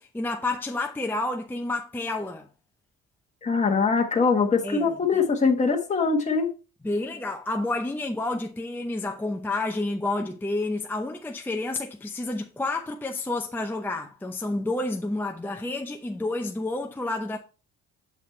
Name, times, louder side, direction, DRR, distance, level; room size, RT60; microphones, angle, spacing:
voice 1, 0.0-2.5 4.6-5.3 6.8-17.4, left 2 dB, 5° left, 0.6 m, -30 dB
voice 2, 3.4-6.5, left 4 dB, 25° left, 1.3 m, -22 dB
7.0 x 4.1 x 4.3 m
cardioid pair, 115°, 30 cm